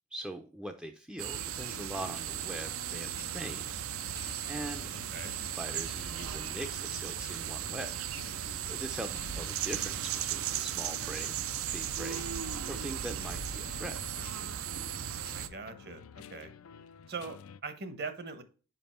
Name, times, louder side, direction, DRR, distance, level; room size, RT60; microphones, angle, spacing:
voice 1, 0.1-3.7 4.5-4.9 5.6-7.9 8.6-11.3 11.7-12.3 12.7-14.0, right 1 dB, 5° right, 4 dB, 0.4 m, -42 dB
sound 1, 1.2-15.5, right 10 dB, 75° right, 0.5 m, -36 dB
sound 2, 1.5-17.6, left 7 dB, 80° left, 0.4 m, -51 dB
voice 2, 15.3-16.5 17.1-18.4, right 4 dB, 50° right, 10 dB, 0.9 m, -41 dB
5.3 x 5.0 x 4.2 m, 0.37 s
head